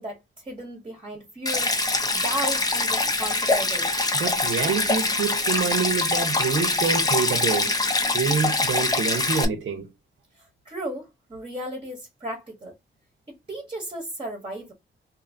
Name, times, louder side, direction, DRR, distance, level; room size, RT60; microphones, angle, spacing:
voice 1, 0.0-1.8 2.1-4.0 10.3-12.7 13.3-14.7, right 1 dB, 25° right, 0.9 m, -35 dB
Stream, 1.5-9.5, left 2 dB, 20° left, 0.6 m, -24 dB
voice 2, 4.1-7.8 8.1-9.9, right 6 dB, 75° right, 0.8 m, -27 dB
2.7 x 2.5 x 2.6 m
wide cardioid pair, 105°, 21 cm